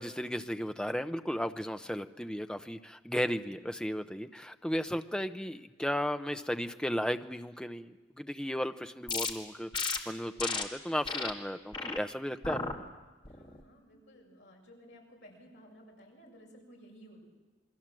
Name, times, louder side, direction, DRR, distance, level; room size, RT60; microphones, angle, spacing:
voice 1, 0.0-12.6, equal, 5° left, 8 dB, 0.7 m, -35 dB
sound 1, 9.1-9.3 9.7-10.0 10.4-10.6 11.1-11.3 11.7-12.0 12.4-12.7 13.2-13.6, left 4 dB, 25° left, 1.9 m, -34 dB
voice 2, 13.3-17.2, equal, 65° left, -1 dB, 7.2 m, -55 dB
28.0 x 22.0 x 7.7 m, 1.2 s
head